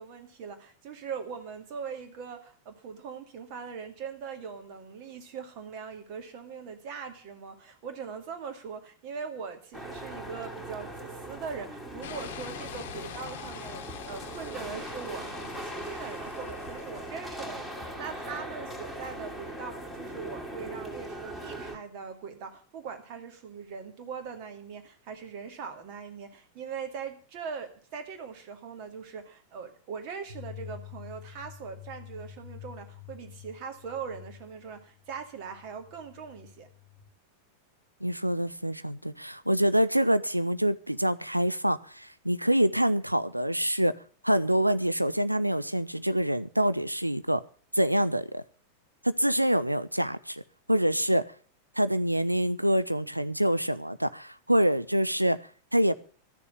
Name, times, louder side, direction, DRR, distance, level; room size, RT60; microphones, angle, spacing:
voice 1, 0.0-36.7, right 6 dB, 45° right, 6 dB, 2.3 m, -41 dB
sound 1, 9.7-21.7, right 1 dB, 10° right, 2.8 m, -40 dB
sound 2, 12.0-17.1, left 10 dB, 55° left, 0.9 m, -44 dB
sound 3, 30.3-37.1, left 11 dB, 60° right, 3.3 m, -48 dB
voice 2, 38.0-43.9 44.2-47.4 47.7-48.4 49.0-50.4 50.7-51.2 51.8-55.4 55.7-55.9, equal, 90° right, 13 dB, 0.5 m, -26 dB
13.0 x 7.0 x 8.2 m, 0.42 s
figure-of-eight pair, 90°, 0 cm